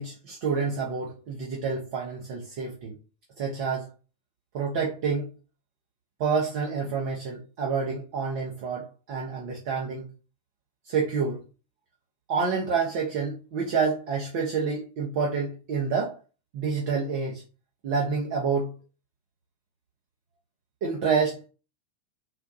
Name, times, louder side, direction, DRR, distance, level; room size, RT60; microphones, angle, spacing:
voice 1, 0.0-2.9 3.4-3.9 4.5-5.3 6.2-10.1 10.8-11.4 12.3-16.2 16.5-17.4 17.8-18.7 20.8-21.5, right 5 dB, 50° right, 0.8 m, -28 dB
4.2 x 2.3 x 2.6 m
figure-of-eight pair, 90°, 0 cm